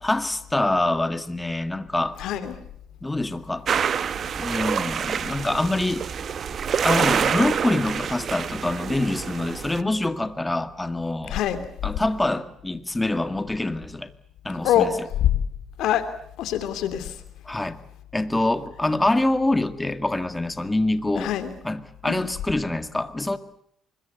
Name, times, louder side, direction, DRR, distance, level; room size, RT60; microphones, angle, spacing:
voice 1, 0.0-2.2 3.0-3.7 4.4-6.1 6.8-11.4 11.8-14.1 14.4-14.9 17.5-17.8 18.1-21.3 21.6-23.4, left 2 dB, 15° left, 10 dB, 2.0 m, -25 dB
voice 2, 2.2-2.5 11.3-11.6 14.6-14.9 15.2-15.3 15.8-16.0 16.4-17.2 21.1-21.5 22.1-22.3, left 11 dB, 85° left, 10 dB, 2.9 m, -24 dB
sound 1, 3.7-9.8, right 7 dB, 55° right, 1.0 m, -26 dB
25.0 x 21.5 x 8.1 m, 0.73 s
cardioid pair, 90°, 0 cm